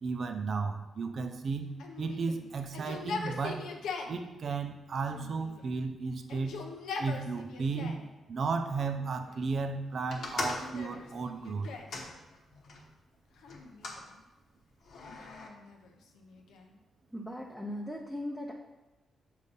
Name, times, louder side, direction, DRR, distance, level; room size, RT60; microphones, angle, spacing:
voice 1, 0.0-3.7 4.1-6.6 7.0-8.0 8.3-11.7, right 4 dB, 55° right, 7 dB, 0.5 m, -34 dB
Yell, 1.8-4.2 5.1-5.8 6.2-8.1 8.8-9.5 10.2-12.0 13.4-14.2 15.0-16.8, left 4 dB, 90° left, 0.6 m, -42 dB
sound 1, 10.1-12.9 13.5-14.0 14.8-15.5, left 3 dB, 70° left, 1.0 m, -40 dB
voice 2, 17.1-18.5, left 1 dB, ahead, -2 dB, 0.6 m, -38 dB
6.6 x 2.7 x 5.4 m, 1.1 s
cardioid pair, 90°, 0 cm